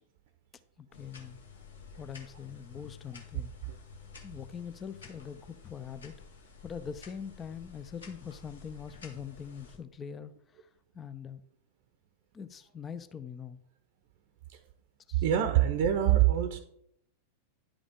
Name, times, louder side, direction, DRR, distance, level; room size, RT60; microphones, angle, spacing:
voice 1, 0.8-1.4 2.0-3.5 4.2-6.1 6.6-10.7 10.9-11.4 12.3-13.6 15.1-15.2, left 7 dB, 20° left, 12 dB, 0.5 m, -43 dB
sound 1, 0.9-9.8, left 6 dB, 70° left, 1.3 m, -51 dB
voice 2, 15.2-16.6, right 11 dB, 50° right, 9 dB, 0.6 m, -25 dB
10.0 x 5.0 x 3.5 m, 0.72 s
figure-of-eight pair, 90°, 0 cm